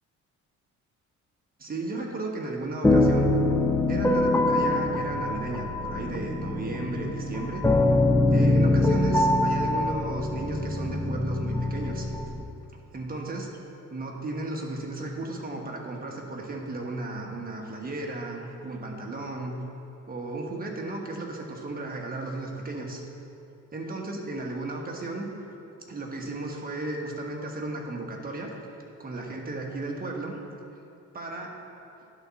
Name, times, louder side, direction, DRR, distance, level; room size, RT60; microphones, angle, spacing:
voice 1, 1.6-3.3 3.9-7.6 8.3-12.1 12.9-13.5 13.9-19.5 20.1-23.0 23.7-25.3 25.9-28.5 29.0-30.4 31.1-31.6, right 2 dB, 30° right, 0 dB, 1.3 m, -34 dB
sound 1, 2.8-12.4, left 2 dB, 10° left, 0.5 m, -24 dB
11.0 x 4.1 x 5.7 m, 2.7 s
cardioid pair, 110°, 30 cm